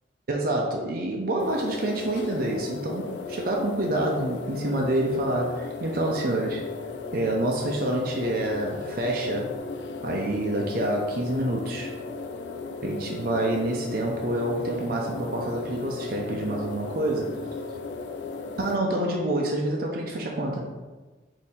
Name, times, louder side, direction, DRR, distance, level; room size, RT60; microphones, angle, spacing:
voice 1, 0.3-6.6 7.1-9.6 10.0-11.9 12.8-17.4 18.6-20.7, right 1 dB, 50° right, -1 dB, 0.5 m, -27 dB
sound 1, 1.4-18.8, left 4 dB, 70° left, 0.3 m, -36 dB
3.5 x 2.7 x 4.2 m, 1.3 s
head